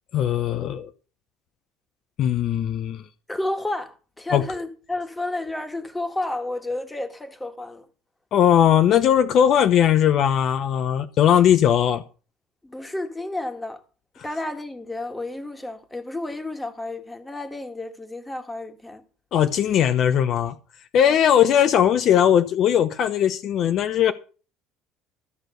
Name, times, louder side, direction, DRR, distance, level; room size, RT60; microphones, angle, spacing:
voice 1, 0.1-0.9 2.2-3.0 4.3-4.4 8.3-12.0 19.3-20.5 20.9-24.1, left 9 dB, 50° left, 0.9 m, -19 dB
voice 2, 3.3-7.8 12.6-13.8 14.2-19.0 21.0-21.2, left 2 dB, 10° left, 1.7 m, -31 dB
13.5 x 6.3 x 6.7 m
cardioid pair, 120°, 0 cm